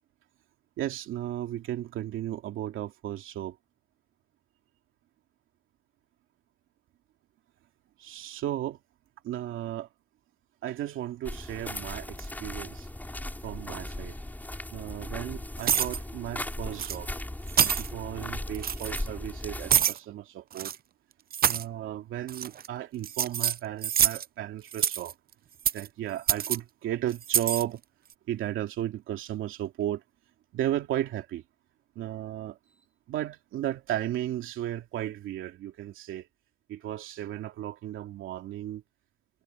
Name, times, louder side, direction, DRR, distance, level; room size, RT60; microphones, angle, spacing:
voice 1, 0.8-3.6 8.0-8.8 9.2-9.9 10.6-12.9 13.4-14.2 14.7-17.1 17.6-20.7 21.5-25.1 25.7-27.8 28.3-30.0 30.5-31.4 32.0-36.3 36.7-38.8, right 12 dB, 85° right, 2.7 m, -34 dB
sound 1, 11.2-19.8, left 1 dB, 10° left, 6.0 m, -37 dB
sound 2, 15.6-16.0 16.8-17.0 17.5-17.9 18.5-19.0 19.7-20.0 20.5-20.8 21.3-21.6 22.3-22.7 23.0-24.2 24.7-25.1 25.7-25.9 26.3-26.6 27.2-27.6, right 9 dB, 50° right, 0.6 m, -26 dB
cardioid pair, 90°, 20 cm